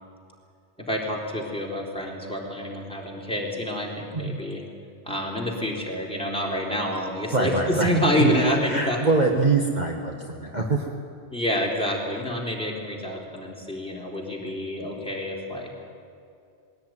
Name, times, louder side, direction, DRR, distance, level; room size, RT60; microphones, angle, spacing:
voice 1, 0.9-4.6 5.0-9.0 11.3-15.7, equal, 5° left, -2 dB, 3.8 m, -27 dB
voice 2, 7.3-8.3 8.7-10.9, right 3 dB, 40° right, 0 dB, 1.5 m, -24 dB
20.5 x 17.0 x 9.4 m, 2.5 s
omnidirectional pair, 1.2 m